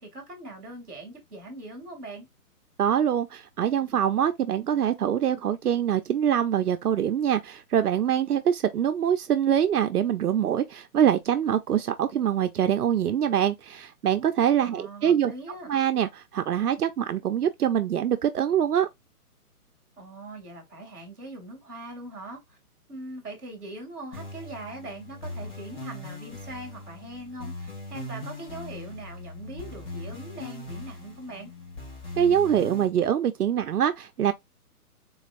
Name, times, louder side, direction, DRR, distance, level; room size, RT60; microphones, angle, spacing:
voice 1, 0.0-2.3 14.6-15.7 20.0-22.6 22.9-31.5, right 2 dB, ahead, 1.2 m, -41 dB
voice 2, 2.8-15.3 15.7-18.9 32.2-34.3, right 9 dB, 75° right, 0.6 m, -24 dB
sound 1, 24.1-32.9, left 2 dB, 50° left, 2.4 m, -40 dB
3.9 x 3.2 x 2.5 m
hypercardioid pair, 175°, 45 cm